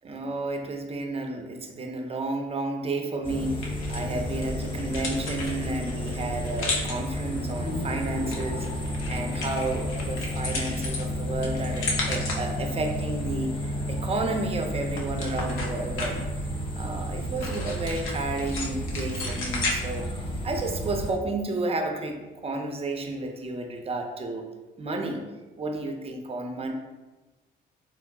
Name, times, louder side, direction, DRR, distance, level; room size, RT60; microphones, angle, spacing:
voice 1, 0.0-8.7 9.1-13.5 13.9-16.3 16.7-20.1 20.4-24.4 24.8-25.2 25.6-26.7, right 2 dB, 30° right, 4 dB, 0.5 m, -31 dB
sound 1, 3.2-21.1, equal, 25° left, 0.6 m, -32 dB
Car keys, 3.6-21.0, left 2 dB, 85° left, 0.7 m, -36 dB
sound 2, 7.2-10.4, left 1 dB, 55° left, 0.8 m, -39 dB
3.7 x 3.0 x 2.2 m, 1.2 s
cardioid pair, 90°, 20 cm